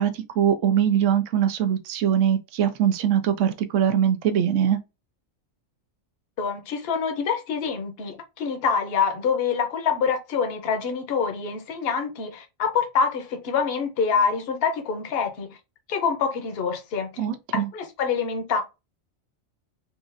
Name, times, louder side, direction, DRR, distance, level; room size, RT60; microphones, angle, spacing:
voice 1, 0.0-4.8 17.2-17.7, right 9 dB, 75° right, 0.9 m, -22 dB
voice 2, 6.4-15.6 15.9-17.1 17.5-18.6, left 6 dB, 55° left, 0.9 m, -26 dB
4.0 x 2.4 x 2.5 m
omnidirectional pair, 1.4 m